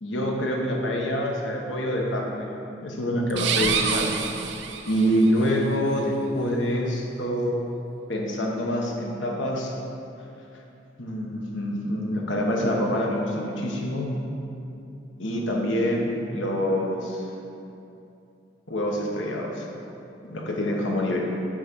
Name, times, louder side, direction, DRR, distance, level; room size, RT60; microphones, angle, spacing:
voice 1, 0.0-2.5 2.8-4.1 4.9-7.6 8.1-9.7 11.0-14.1 15.2-17.2 18.7-19.6 20.2-21.2, equal, 75° left, -1 dB, 1.2 m, -26 dB
sound 1, 3.3-5.3, right 6 dB, 65° right, 0.5 m, -27 dB
6.2 x 5.0 x 6.2 m, 2.7 s
head